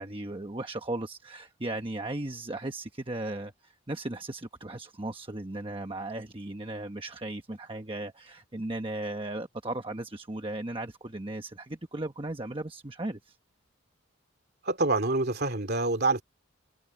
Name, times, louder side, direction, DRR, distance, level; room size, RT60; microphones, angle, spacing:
voice 1, 0.0-13.4, right 2 dB, 25° right, 1.1 m, -36 dB
voice 2, 14.6-16.2, right 2 dB, 50° right, 2.9 m, -26 dB
head